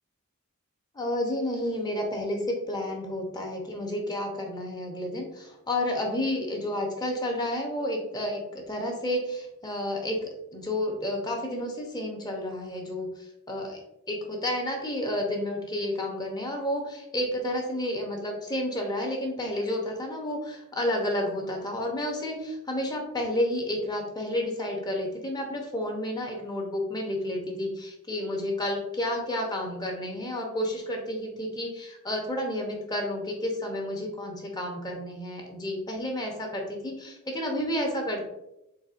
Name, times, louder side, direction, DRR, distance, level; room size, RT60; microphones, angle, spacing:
voice 1, 0.9-13.8 14.1-38.2, left 1 dB, 20° left, 1 dB, 0.7 m, -31 dB
4.0 x 3.5 x 2.4 m, 0.87 s
head